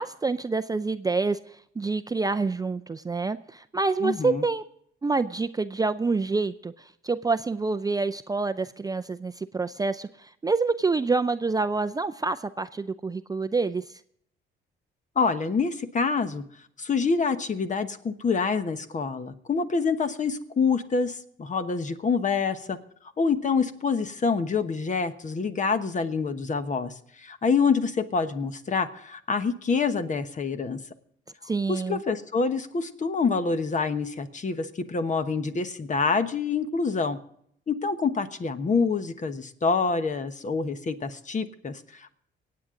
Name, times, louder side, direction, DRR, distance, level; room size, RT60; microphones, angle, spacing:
voice 1, 0.0-1.4 1.8-4.6 5.0-13.8 31.4-32.0, right 3 dB, 20° right, 10 dB, 0.4 m, -27 dB
voice 2, 4.0-4.4 15.1-16.4 16.8-22.8 23.2-30.8 31.7-37.2 37.7-42.1, left 5 dB, 40° left, 10 dB, 1.2 m, -26 dB
24.5 x 8.7 x 3.8 m, 0.68 s
cardioid pair, 90°, 20 cm